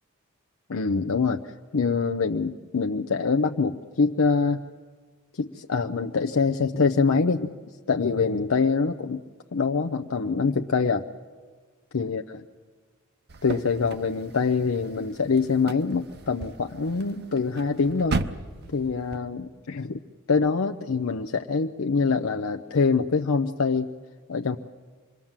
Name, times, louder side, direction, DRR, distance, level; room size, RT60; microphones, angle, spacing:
voice 1, 0.7-1.4 1.7-4.6 5.4-7.5 7.9-9.2 9.5-11.0 11.9-12.4 13.4-18.2 18.7-20.0 20.3-23.9 24.3-24.6, left 4 dB, 85° left, 5 dB, 0.6 m, -24 dB
sound 1, 13.3-19.2, right 3 dB, 55° right, 0.9 m, -36 dB
26.5 x 21.0 x 7.4 m, 1.5 s
head